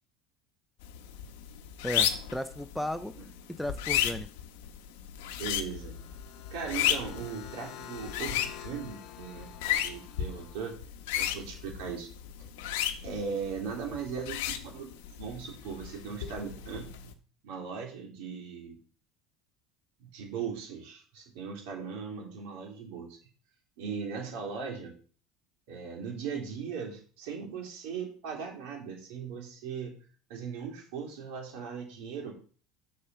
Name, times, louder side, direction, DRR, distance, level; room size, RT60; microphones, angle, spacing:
sound 1, 0.8-17.1, left 10 dB, 90° left, 0.9 m, -34 dB
voice 1, 1.8-4.3, left 1 dB, ahead, 10 dB, 0.4 m, -35 dB
voice 2, 5.4-6.0 6.5-10.7 11.1-12.1 13.0-14.9 15.2-16.9 17.4-18.8 20.0-23.2 23.8-24.9 25.7-29.9 30.3-32.4, right 6 dB, 75° right, 0 dB, 2.9 m, -38 dB
sound 2, 5.7-10.7, left 10 dB, 55° left, 0.8 m, -48 dB
6.8 x 4.3 x 6.7 m, 0.40 s
cardioid pair, 145°, 0 cm